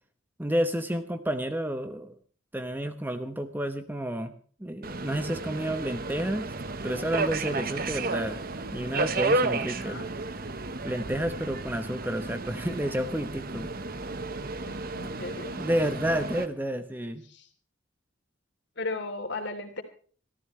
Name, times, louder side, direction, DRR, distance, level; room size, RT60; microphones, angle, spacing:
voice 1, 0.4-2.2 2.5-4.3 4.6-6.5 6.8-8.4 8.7-10.0 10.8-13.7 15.6-17.2, equal, 10° right, 9 dB, 0.9 m, -30 dB
Subway metro underground, 4.8-16.5, right 3 dB, 45° right, 1.1 m, -32 dB
voice 2, 9.7-10.1 14.6-15.6 17.3-17.5 18.8-19.8, left 2 dB, 60° left, 5 dB, 3.3 m, -36 dB
26.0 x 14.0 x 3.2 m, 0.43 s
head